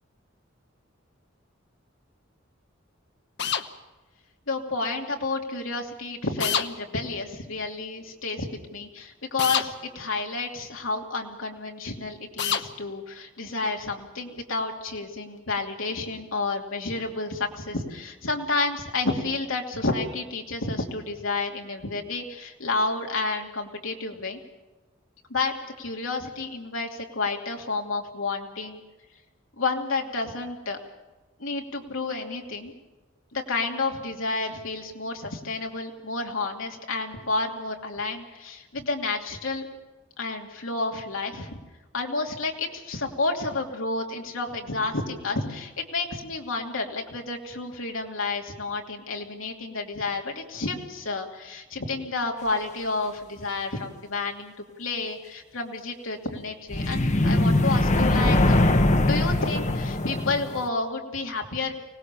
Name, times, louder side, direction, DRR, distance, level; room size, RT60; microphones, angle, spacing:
sound 1, 3.4-3.7 6.4-6.7 9.4-9.7 12.4-12.7, left 8 dB, 60° left, 1.1 m, -25 dB
voice 1, 4.5-8.5 8.7-24.4 25.3-28.8 29.6-30.8 31.4-32.7 33.3-39.7 40.2-41.6 41.9-58.6 59.0-61.7, left 3 dB, 85° left, 1 dB, 2.8 m, -30 dB
sound 2, 56.7-60.7, left 1 dB, 40° left, 1.0 m, -22 dB
24.5 x 19.0 x 6.9 m, 1.1 s
head